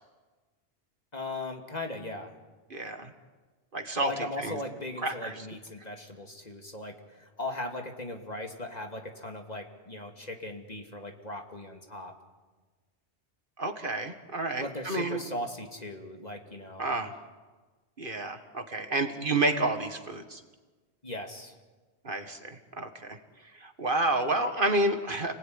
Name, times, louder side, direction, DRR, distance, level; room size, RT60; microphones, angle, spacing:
voice 1, 1.1-2.4 3.9-12.1 14.6-17.0 21.0-21.5, left 1 dB, 40° left, 3 dB, 2.6 m, -38 dB
voice 2, 2.7-3.1 3.7-4.6 5.0-5.5 13.6-15.2 16.8-17.1 18.0-20.4 22.0-23.2 23.6-25.3, right 2 dB, 50° right, 7 dB, 1.9 m, -30 dB
29.5 x 19.5 x 9.6 m, 1.3 s
omnidirectional pair, 1.1 m